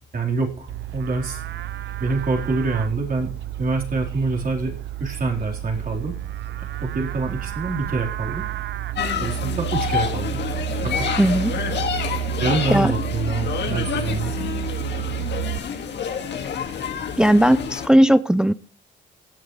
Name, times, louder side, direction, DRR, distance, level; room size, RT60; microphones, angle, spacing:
voice 1, 0.1-1.4 2.0-3.3 3.6-6.2 6.5-8.5 9.2-10.4 10.7-11.1 12.4-14.3, right 3 dB, 45° right, 4.2 m, -26 dB
Livestock farm animals working animals, 0.7-15.6, right 16 dB, 65° right, 0.6 m, -30 dB
sound 1, 8.9-17.9, left 7 dB, 60° left, 2.0 m, -28 dB
voice 2, 11.2-11.5 12.7-12.9 17.2-18.5, equal, 5° right, 0.5 m, -16 dB
16.5 x 8.7 x 3.2 m
cardioid pair, 90°, 20 cm